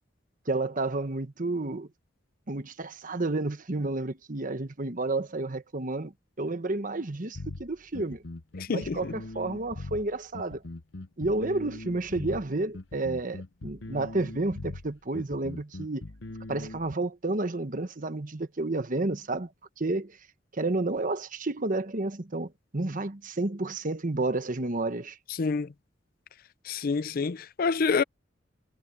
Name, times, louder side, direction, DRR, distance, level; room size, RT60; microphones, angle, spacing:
voice 1, 0.5-1.9 2.5-6.1 6.4-8.2 8.7-10.6 11.2-16.0 16.5-19.5 19.8-20.2 20.5-25.2, right 2 dB, 45° right, 1.2 m, -31 dB
sound 1, 7.3-16.9, left 2 dB, 80° left, 1.1 m, -41 dB
voice 2, 8.6-9.1 25.4-25.7 26.7-28.0, left 4 dB, 50° left, 0.5 m, -27 dB
head